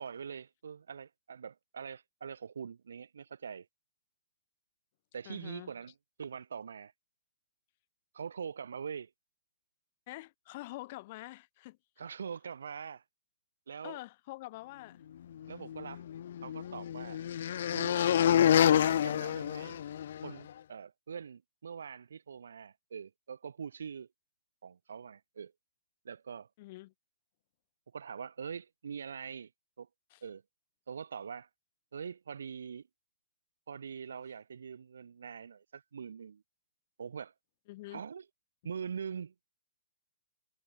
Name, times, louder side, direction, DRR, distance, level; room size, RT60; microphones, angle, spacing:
voice 1, 0.0-3.7 5.1-6.9 8.1-9.1 12.0-13.0 13.7-14.0 15.5-16.0 16.4-17.2 17.7-18.0 18.6-19.8 20.2-24.1 24.6-25.5 26.1-26.5 27.9-29.5 29.8-29.9 30.2-30.4 30.9-31.5 31.9-32.9 33.7-36.4 37.0-37.3 37.9-38.3 38.6-39.3, right 6 dB, 85° right, 5.2 m, -43 dB
voice 2, 5.2-5.7 10.1-12.1 13.8-15.0 26.6-26.9 30.1-30.2 37.7-38.0, left 19 dB, 40° left, 6.8 m, -46 dB
sound 1, 15.7-20.3, left 10 dB, 60° left, 1.3 m, -28 dB
hypercardioid pair, 155°, 0 cm